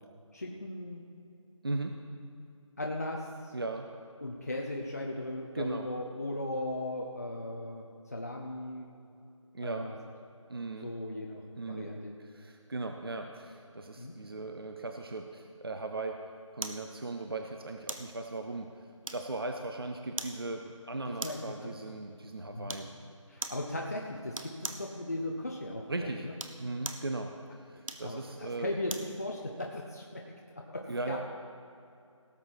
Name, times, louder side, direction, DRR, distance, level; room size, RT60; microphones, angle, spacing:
voice 1, 0.3-1.1 2.8-3.6 4.2-8.9 9.6-10.0 10.8-12.2 14.0-14.1 21.1-21.8 22.5-22.8 23.3-26.3 28.0-31.2, left 1 dB, 30° left, -1 dB, 0.7 m, -38 dB
voice 2, 1.6-2.0 3.5-3.9 5.5-5.9 9.5-9.9 10.5-10.9 11.6-11.9 12.3-16.2 16.5-18.7 19.1-22.9 25.9-26.3 26.6-27.3 27.7-28.7 30.9-31.2, right 2 dB, 45° right, 5 dB, 0.7 m, -37 dB
sound 1, 16.6-16.9 17.9-18.1 19.0-19.5 20.2-20.4 21.2-21.5 22.7-22.9 23.4-23.7 24.3-24.9 26.2-27.1 27.8-29.1 29.6-29.7, right 2 dB, 85° right, 1.2 m, -40 dB
18.0 x 7.3 x 4.6 m, 2.6 s
figure-of-eight pair, 170°, 17 cm